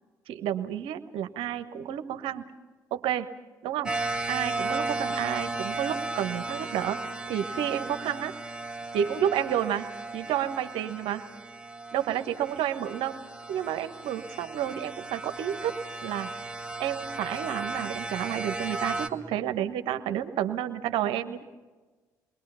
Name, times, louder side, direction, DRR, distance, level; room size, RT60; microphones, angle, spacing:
voice 1, 0.3-2.4 2.9-3.3 3.6-3.9 4.3-7.0 7.3-8.3 8.9-9.9 10.1-11.2 11.9-13.1 13.5-15.7 16.0-16.5 16.8-21.4, right 10 dB, 65° right, 10 dB, 1.2 m, -30 dB
sound 1, 3.9-19.1, right 2 dB, 10° right, 2.1 m, -35 dB
28.5 x 22.0 x 5.7 m, 1.3 s
figure-of-eight pair, 45°, 10 cm